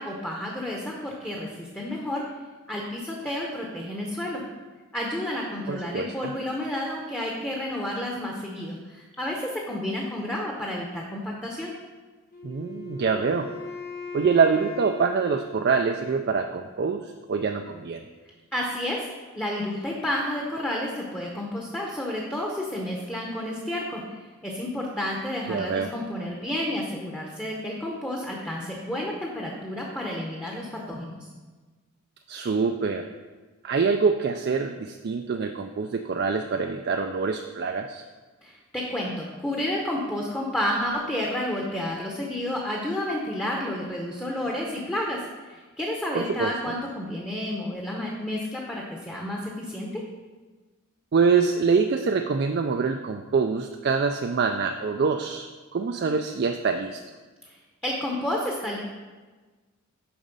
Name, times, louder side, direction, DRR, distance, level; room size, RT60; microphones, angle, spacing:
voice 1, 0.0-2.3 2.7-4.4 4.9-11.7 18.5-19.1 19.3-31.2 38.4-50.0 57.4-58.8, left 1 dB, 10° left, -1 dB, 0.8 m, -31 dB
voice 2, 5.7-6.3 12.4-13.5 14.1-18.0 25.5-25.9 32.3-33.1 33.6-38.0 46.1-46.5 51.1-57.0, right 5 dB, 50° right, 5 dB, 0.3 m, -25 dB
Wind instrument woodwind instrument, 12.3-16.4, left 4 dB, 40° left, 1.1 m, -39 dB
7.1 x 5.2 x 5.3 m, 1.3 s
head